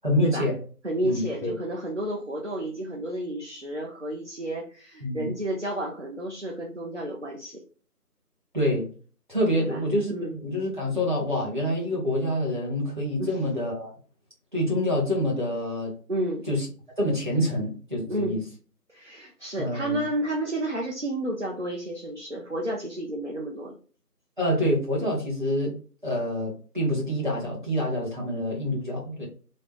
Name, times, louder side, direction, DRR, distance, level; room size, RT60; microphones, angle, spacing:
voice 1, 0.0-0.6 1.0-1.5 5.0-5.3 8.5-8.9 9.3-13.9 14.5-16.0 16.5-16.7 17.0-18.4 19.6-20.0 24.4-25.8 26.0-29.3, equal, 30° right, -5 dB, 1.1 m, -26 dB
voice 2, 0.8-7.6 9.5-9.8 10.1-10.4 13.2-13.4 16.1-16.5 18.1-18.4 18.9-23.7, right 1 dB, 50° right, -1 dB, 0.5 m, -31 dB
3.2 x 2.0 x 4.0 m, 0.41 s
figure-of-eight pair, 170°, 48 cm